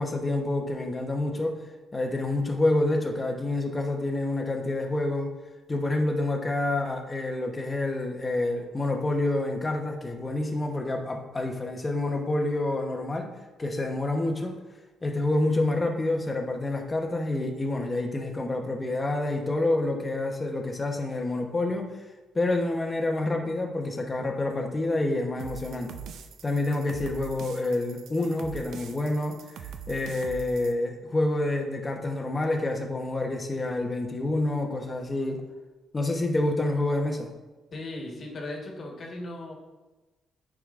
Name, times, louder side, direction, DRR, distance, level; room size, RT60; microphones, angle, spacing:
voice 1, 0.0-1.6 1.9-5.3 5.7-13.3 13.6-14.6 15.0-22.0 22.3-25.9 26.4-35.4 35.9-37.3, left 2 dB, 25° left, 3 dB, 0.9 m, -28 dB
sound 1, 25.4-30.7, right 7 dB, 75° right, 0.4 m, -43 dB
voice 2, 37.7-39.5, left 2 dB, 50° left, 0 dB, 1.5 m, -37 dB
9.2 x 4.9 x 2.5 m, 1.2 s
cardioid pair, 90°, 0 cm